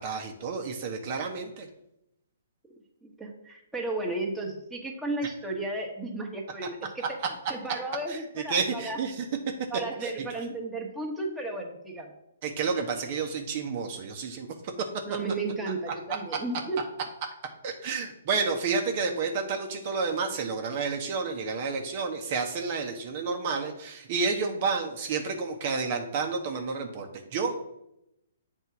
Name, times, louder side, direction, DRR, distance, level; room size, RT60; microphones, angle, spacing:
voice 1, 0.0-1.7 8.1-8.2 8.5-9.3 10.0-10.1 12.4-14.5 17.6-27.6, right 4 dB, 45° right, 3 dB, 0.9 m, -30 dB
voice 2, 3.0-7.1 7.5-9.0 9.7-12.1 15.0-16.8, right 2 dB, 5° right, -1 dB, 1.2 m, -34 dB
8.0 x 3.6 x 5.8 m, 0.83 s
hypercardioid pair, 135°, 0 cm